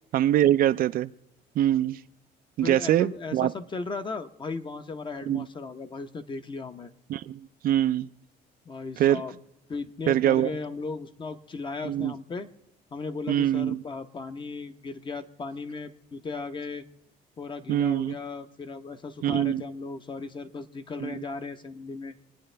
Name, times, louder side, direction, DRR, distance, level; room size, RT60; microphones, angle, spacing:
voice 1, 0.1-1.1 1.6-2.0 2.6-3.5 5.3-5.4 7.1-8.1 9.0-9.2 10.1-10.5 11.8-12.1 13.3-13.8 17.7-18.1 19.2-19.6 21.0-21.2, right 12 dB, 60° right, 12 dB, 0.5 m, -24 dB
voice 2, 2.6-6.9 8.6-9.4 9.7-12.5 12.9-16.9 17.4-22.1, left 4 dB, 30° left, 9 dB, 0.9 m, -36 dB
26.5 x 9.7 x 3.3 m, 0.91 s
cardioid pair, 110°, 17 cm